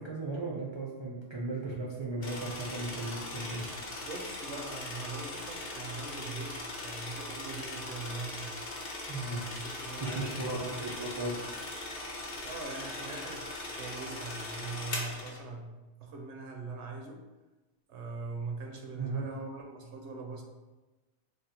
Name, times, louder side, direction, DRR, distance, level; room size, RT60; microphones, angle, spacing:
voice 1, 0.0-3.7 9.1-9.5 10.0-11.6 18.9-19.2, right 2 dB, 45° right, -4 dB, 0.3 m, -36 dB
sound 1, 2.2-15.4, left 2 dB, 60° left, 0.8 m, -40 dB
voice 2, 3.9-8.5 9.3-10.9 12.4-15.7 16.0-17.2 17.9-20.4, right 3 dB, 80° right, 2 dB, 0.9 m, -41 dB
3.3 x 2.1 x 4.2 m, 1.1 s
omnidirectional pair, 1.2 m